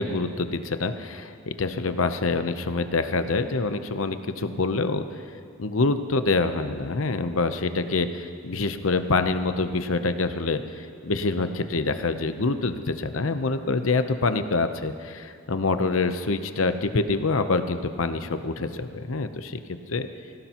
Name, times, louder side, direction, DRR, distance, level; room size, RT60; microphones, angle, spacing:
voice 1, 0.0-5.0 5.6-20.1, left 3 dB, 80° left, 9 dB, 0.8 m, -26 dB
24.0 x 16.5 x 3.0 m, 2.3 s
head